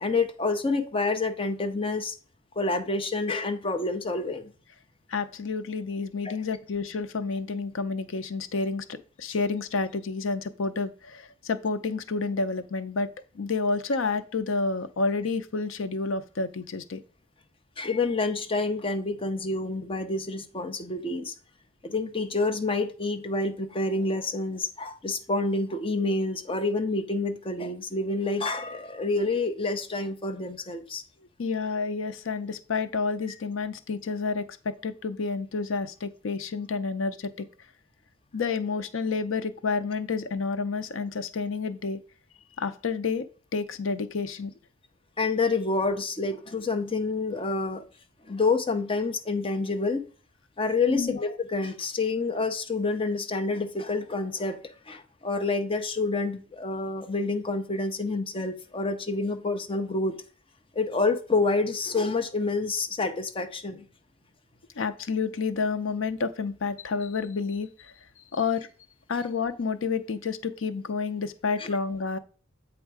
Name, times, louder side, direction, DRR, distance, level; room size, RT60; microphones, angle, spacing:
voice 1, 0.0-2.1 2.6-4.5 6.2-6.4 17.8-21.3 21.8-31.0 45.2-47.9 48.3-50.0 50.6-54.6 54.9-60.1 60.7-63.8 71.6-71.7, left 3 dB, 25° left, 6 dB, 0.7 m, -28 dB
voice 2, 5.1-13.1 13.3-17.0 31.4-37.5 38.3-42.0 42.6-44.5 50.9-51.1 64.8-67.9 68.3-68.7 69.1-72.2, left 4 dB, 80° left, 12 dB, 0.6 m, -29 dB
8.1 x 3.5 x 4.8 m, 0.37 s
head